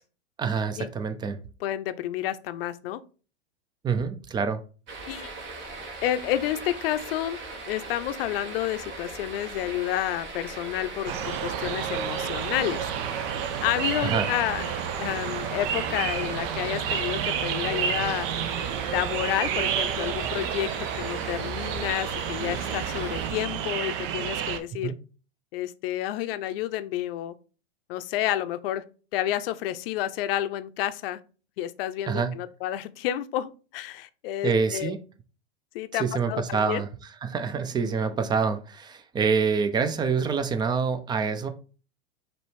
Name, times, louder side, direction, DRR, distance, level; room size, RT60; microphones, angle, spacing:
voice 1, 0.4-1.4 3.8-4.6 14.0-14.3 24.8-25.0 32.1-32.3 34.4-35.0 35.9-41.5, right 5 dB, 15° right, 0.4 m, -26 dB
voice 2, 1.6-3.0 5.1-5.3 6.0-7.4 7.6-12.9 13.6-18.3 18.9-20.7 21.0-24.9 25.5-27.4 27.9-28.8 29.1-31.2 31.6-34.9 35.7-36.8, left 13 dB, 55° left, 0.6 m, -30 dB
sound 1, 4.9-23.3, right 3 dB, 35° right, 1.3 m, -38 dB
sound 2, 11.1-24.6, right 9 dB, 55° right, 0.6 m, -30 dB
5.1 x 3.0 x 3.2 m
hypercardioid pair, 105°, 34 cm